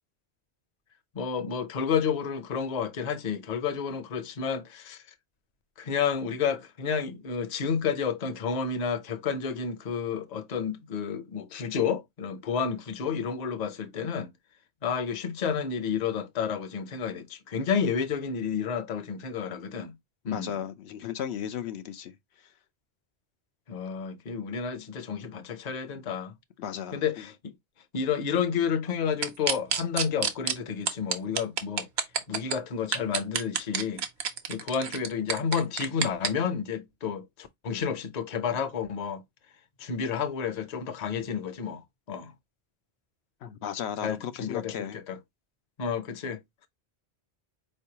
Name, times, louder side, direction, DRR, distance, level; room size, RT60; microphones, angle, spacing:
voice 1, 1.1-5.0 5.8-14.3 14.8-19.9 20.3-20.6 23.7-26.3 26.9-27.5 27.9-31.9 32.3-34.0 34.5-39.2 39.8-41.8 42.1-42.3 44.0-45.2 45.8-46.4, left 6 dB, 45° left, 0.7 m, -30 dB
voice 2, 20.2-22.1 26.6-27.0 43.4-45.0, left 9 dB, 90° left, 0.9 m, -35 dB
sound 1, 29.2-30.5 30.9-32.6 32.9-36.3, right 7 dB, 75° right, 1.0 m, -28 dB
4.4 x 3.3 x 2.8 m
omnidirectional pair, 1.1 m